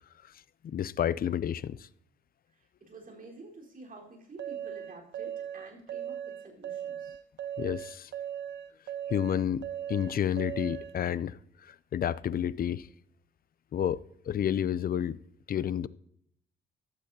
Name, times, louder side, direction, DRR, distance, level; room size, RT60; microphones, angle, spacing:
voice 1, 0.6-1.9 7.6-8.1 9.1-12.9 13.7-15.2 15.5-15.9, left 9 dB, 45° left, 0.5 m, -30 dB
voice 2, 2.5-7.2, right 3 dB, 45° right, 4.3 m, -49 dB
sound 1, 4.4-10.9, right 10 dB, 60° right, 1.0 m, -38 dB
14.5 x 12.0 x 2.8 m
cardioid pair, 90°, 20 cm